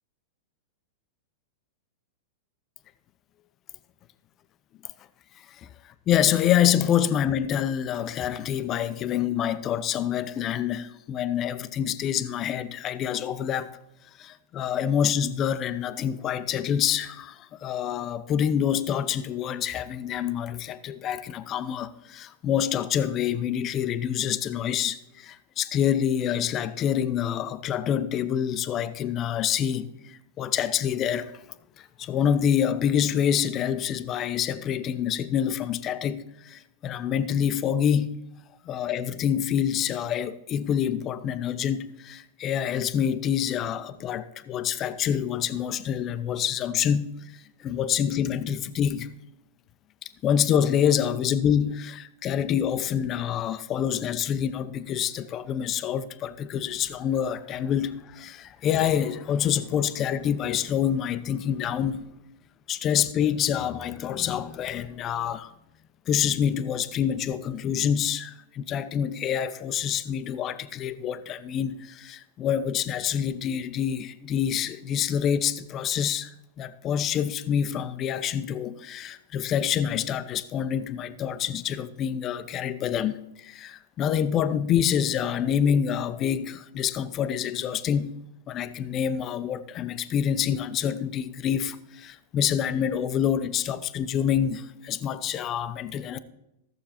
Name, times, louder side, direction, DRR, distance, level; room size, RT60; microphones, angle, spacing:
voice 1, 5.6-13.8 14.2-31.3 31.8-38.1 38.6-47.1 47.6-49.1 50.2-62.1 62.7-65.5 66.1-88.1 88.5-96.2, left 9 dB, 35° left, 0.6 m, -27 dB
14.5 x 6.9 x 4.3 m
hypercardioid pair, 120°, 0 cm